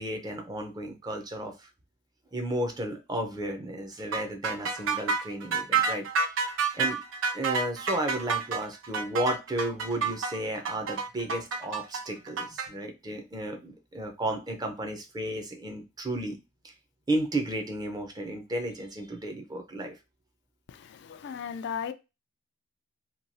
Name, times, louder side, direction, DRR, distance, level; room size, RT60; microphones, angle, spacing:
voice 1, 0.0-1.5 2.3-6.0 6.7-7.0 7.3-16.4 17.1-20.0, right 1 dB, 20° right, 0.5 m, -33 dB
sound 1, 4.1-12.7, right 5 dB, 90° right, 0.5 m, -29 dB
voice 2, 20.7-21.9, left 7 dB, 60° left, 0.3 m, -36 dB
3.0 x 2.3 x 2.6 m
head